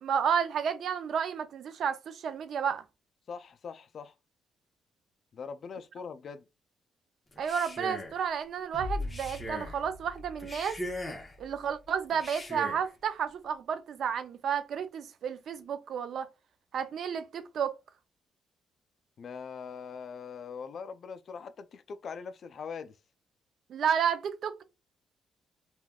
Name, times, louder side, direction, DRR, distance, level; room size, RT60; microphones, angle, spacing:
voice 1, 0.0-2.8 7.4-10.8 11.4-16.3 16.7-17.8 23.7-24.6, right 7 dB, 65° right, 0.4 m, -31 dB
voice 2, 3.3-4.1 5.3-6.4 19.2-23.0, left 6 dB, 55° left, 0.3 m, -42 dB
Male speech man speaking, 7.3-8.2 9.0-9.8 10.4-11.4 12.1-12.9, left 1 dB, 20° left, 0.9 m, -40 dB
sound 1, 8.7-12.0, left 2 dB, ahead, 1.3 m, -41 dB
3.4 x 2.3 x 2.3 m
cardioid pair, 90°, 0 cm